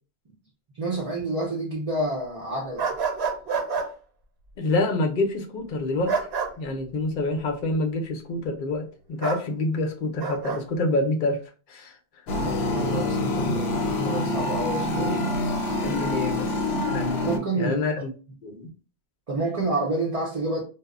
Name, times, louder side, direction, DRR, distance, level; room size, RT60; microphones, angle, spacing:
voice 1, 0.7-2.9 12.5-15.3 17.2-17.8 19.3-20.6, right 2 dB, 45° right, 0.6 m, -29 dB
sound 1, 2.8-3.9 6.1-6.5 9.2-9.4 10.2-10.6, right 5 dB, 80° right, 0.9 m, -27 dB
voice 2, 4.6-6.2 6.6-11.4 11.7-12.0 15.8-18.1 18.4-18.7, left 2 dB, 60° left, 0.7 m, -27 dB
sound 2, 12.3-17.4, left 2 dB, 90° left, 0.9 m, -26 dB
2.0 x 2.0 x 3.5 m
omnidirectional pair, 1.1 m